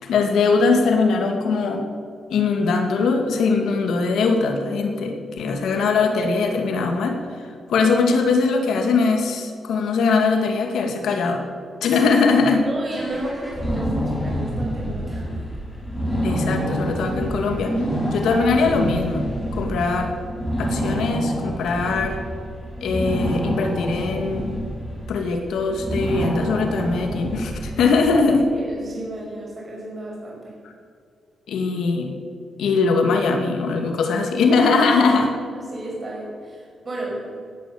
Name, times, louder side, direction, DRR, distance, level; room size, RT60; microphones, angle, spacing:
voice 1, 0.0-1.9 2.3-11.4 11.8-12.7 16.2-17.7 18.1-20.1 20.6-22.2 22.8-24.6 25.1-28.5 31.5-32.2 32.6-35.3, left 4 dB, 80° left, 4 dB, 2.1 m, -21 dB
voice 2, 12.6-15.4 18.2-18.4 28.5-30.5 35.5-37.2, right 1 dB, 25° right, -3 dB, 5.7 m, -33 dB
sound 1, 12.9-28.3, equal, 10° left, 5.2 m, -27 dB
17.0 x 12.0 x 7.0 m, 2.2 s
wide cardioid pair, 180°, 0 cm